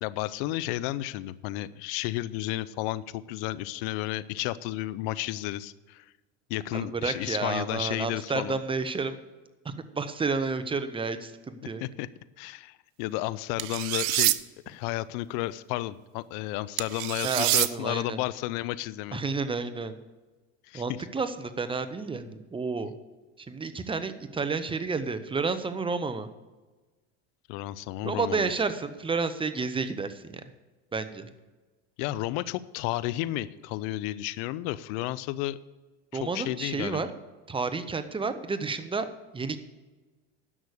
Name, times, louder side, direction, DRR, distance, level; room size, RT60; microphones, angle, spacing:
voice 1, 0.0-6.1 6.5-8.6 11.6-12.1 12.4-14.3 14.7-19.2 20.7-20.8 27.5-28.5 32.0-35.6 36.2-37.1, left 16 dB, 65° left, 17 dB, 0.7 m, -32 dB
voice 2, 6.7-9.2 9.6-11.8 17.2-18.2 19.1-19.9 20.7-22.9 23.4-26.3 28.0-30.4 30.9-31.3 36.1-37.1 37.5-39.1 39.3-39.6, right 4 dB, 15° right, 11 dB, 0.9 m, -31 dB
sound 1, 13.6-14.4 16.8-17.7, right 18 dB, 70° right, 0.6 m, -25 dB
11.0 x 6.4 x 8.3 m, 1.2 s
supercardioid pair, 105°, 36 cm